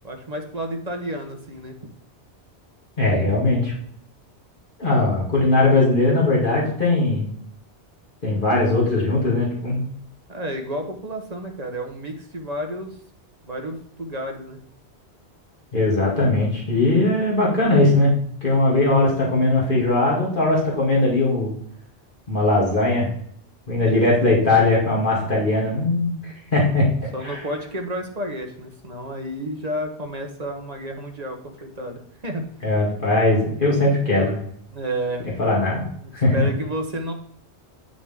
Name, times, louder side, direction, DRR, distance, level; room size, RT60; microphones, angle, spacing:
voice 1, 0.0-1.9 10.3-13.0 13.4-14.6 23.9-24.3 27.1-32.4 34.7-35.3 36.0-37.1, equal, 35° right, 3 dB, 1.2 m, -31 dB
voice 2, 3.0-3.7 4.8-7.2 8.2-9.8 15.7-21.5 22.3-23.1 23.7-26.2 26.5-26.9 27.2-27.4 32.6-34.4 35.4-35.9 36.1-36.5, left 2 dB, 45° left, -5 dB, 2.6 m, -19 dB
9.1 x 6.4 x 3.6 m, 0.64 s
omnidirectional pair, 1.2 m